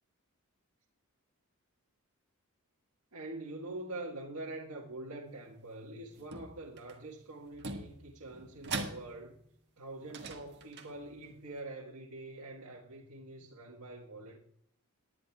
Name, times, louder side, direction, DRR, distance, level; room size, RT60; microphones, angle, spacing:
voice 1, 3.1-9.3 9.8-14.4, right 2 dB, 85° right, 1.6 m, -45 dB
sound 1, 6.1-7.0 7.5-9.5 10.0-11.4, right 3 dB, 50° right, 1.6 m, -43 dB
19.5 x 10.5 x 2.4 m
head